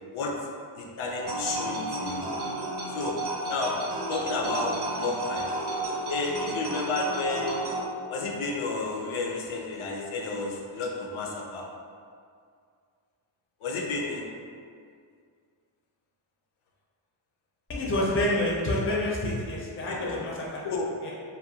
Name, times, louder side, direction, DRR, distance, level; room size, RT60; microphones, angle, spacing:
voice 1, 0.8-2.3 2.9-3.2 3.5-3.8 4.1-5.5 6.1-7.6 8.1-11.6 13.6-14.2 19.9-20.2 20.6-20.9, left 3 dB, 80° left, 0 dB, 0.5 m, -31 dB
sound 1, 1.2-7.8, right 1 dB, 60° right, 0.5 m, -32 dB
voice 2, 17.7-20.7 21.0-21.1, left 1 dB, 30° left, -4 dB, 0.5 m, -28 dB
2.5 x 2.2 x 2.7 m, 2.2 s
wide cardioid pair, 100°, 47 cm